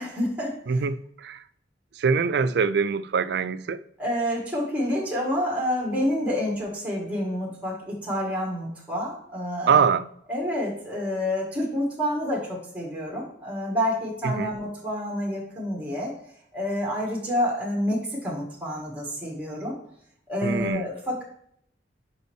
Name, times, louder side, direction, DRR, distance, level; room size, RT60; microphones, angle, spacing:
voice 1, 0.0-0.8 4.0-9.8 10.3-16.1 16.5-19.7 20.3-21.2, equal, 10° right, 1.7 m, -28 dB
voice 2, 0.7-1.4 2.0-3.8 9.7-10.1 14.2-14.5 20.4-20.8, right 5 dB, 70° right, 0.4 m, -23 dB
5.4 x 5.2 x 4.5 m
head